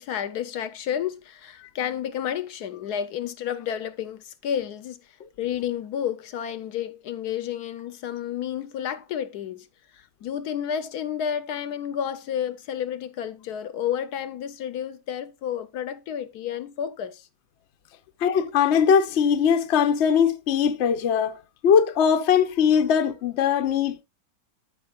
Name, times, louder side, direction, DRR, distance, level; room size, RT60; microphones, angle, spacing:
voice 1, 0.0-9.7 9.9-17.3, left 9 dB, 70° left, 1.1 m, -31 dB
voice 2, 18.2-24.0, left 7 dB, 55° left, 0.8 m, -21 dB
13.5 x 5.4 x 2.3 m
omnidirectional pair, 1.8 m